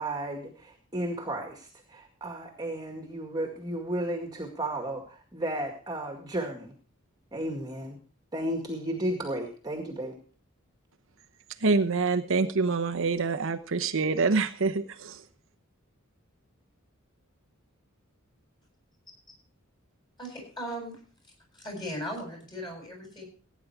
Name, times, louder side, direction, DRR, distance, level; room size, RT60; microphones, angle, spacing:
voice 1, 0.0-6.7 7.3-8.0 8.3-10.2, right 1 dB, 20° right, 3 dB, 2.0 m, -33 dB
voice 2, 11.6-15.2, right 4 dB, 65° right, 8 dB, 0.9 m, -26 dB
voice 3, 20.2-21.0 21.5-23.3, equal, 20° left, 1 dB, 7.7 m, -37 dB
17.0 x 9.6 x 4.7 m, 0.42 s
head